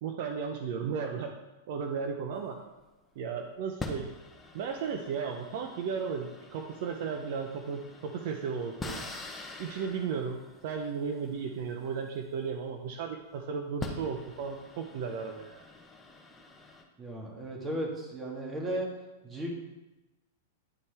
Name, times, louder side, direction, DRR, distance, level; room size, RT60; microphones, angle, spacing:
voice 1, 0.0-1.3 1.7-2.6 3.2-4.1 4.5-9.0 9.6-15.6, right 6 dB, 55° right, 4 dB, 0.7 m, -35 dB
sound 1, 2.3-3.1 3.8-12.9 13.4-13.5 13.8-16.8, left 2 dB, 10° left, 0.8 m, -45 dB
voice 2, 17.0-18.9 19.2-19.5, right 1 dB, 15° right, 0 dB, 1.6 m, -35 dB
9.9 x 4.2 x 3.4 m, 1.1 s
hypercardioid pair, 145°, 0 cm